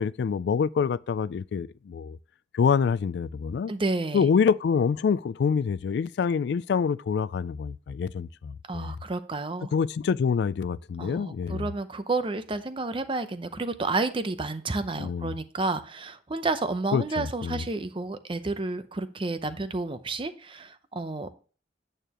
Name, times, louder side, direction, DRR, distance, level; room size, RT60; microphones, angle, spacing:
voice 1, 0.0-2.2 2.5-3.7 4.1-9.0 9.7-11.7 15.0-15.3 16.9-17.6, left 6 dB, 70° left, 0.3 m, -26 dB
voice 2, 3.7-4.3 8.7-9.7 11.0-21.3, right 3 dB, 30° right, 0.6 m, -30 dB
9.0 x 6.5 x 3.0 m
head